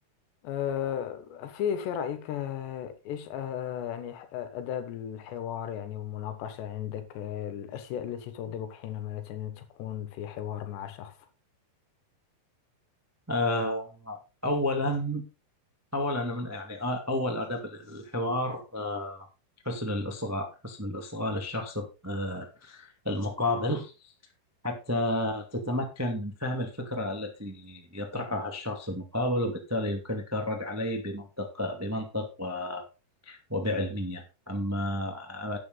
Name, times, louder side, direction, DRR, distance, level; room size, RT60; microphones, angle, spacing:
voice 1, 0.4-11.2, left 9 dB, 90° left, 3.7 m, -35 dB
voice 2, 13.3-14.2 14.4-15.2 15.9-19.2 19.6-24.1 24.6-32.8 33.2-35.6, left 1 dB, 20° right, 0.4 m, -31 dB
12.0 x 8.8 x 3.9 m
omnidirectional pair, 4.9 m